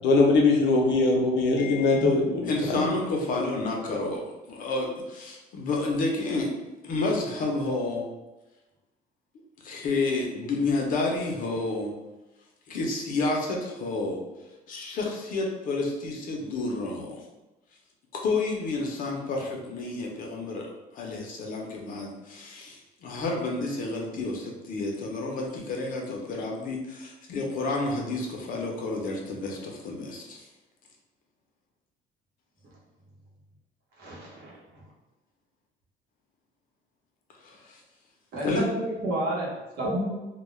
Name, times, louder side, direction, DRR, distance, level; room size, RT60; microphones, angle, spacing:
voice 1, 0.0-2.9, left 3 dB, 85° left, 1 dB, 0.6 m, -22 dB
voice 2, 2.4-6.5 6.8-8.1 9.6-11.9 12.7-14.2 14.7-17.2 18.1-30.5 37.4-37.8 38.4-38.7, left 3 dB, 45° left, 0 dB, 0.5 m, -30 dB
voice 3, 34.0-34.5 38.3-39.5 39.8-40.1, right 1 dB, 60° right, -5 dB, 0.9 m, -30 dB
2.2 x 2.1 x 3.1 m, 1.1 s
cardioid pair, 175°, 19 cm